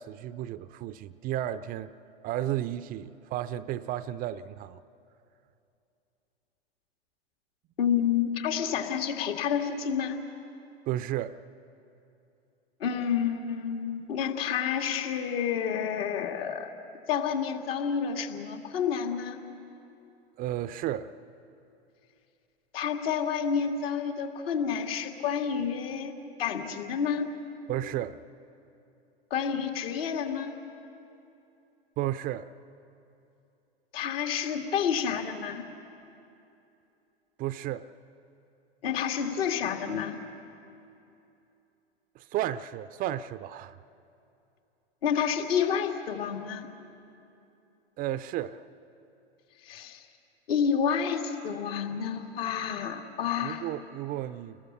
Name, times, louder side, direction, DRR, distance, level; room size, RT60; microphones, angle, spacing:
voice 1, 0.0-1.9 2.2-4.8 10.9-11.4 20.4-21.1 27.7-28.2 32.0-32.5 37.4-37.9 42.1-43.8 48.0-48.6 53.4-54.6, right 12 dB, 25° right, 0.5 m, -33 dB
voice 2, 7.8-10.2 12.8-16.7 17.1-19.4 22.7-26.1 26.4-27.3 29.3-30.5 33.9-35.6 38.8-40.2 45.0-46.7 49.6-50.1 50.5-53.7, left 7 dB, 65° left, 2.3 m, -29 dB
30.0 x 21.0 x 6.8 m
hypercardioid pair, 105°, 32 cm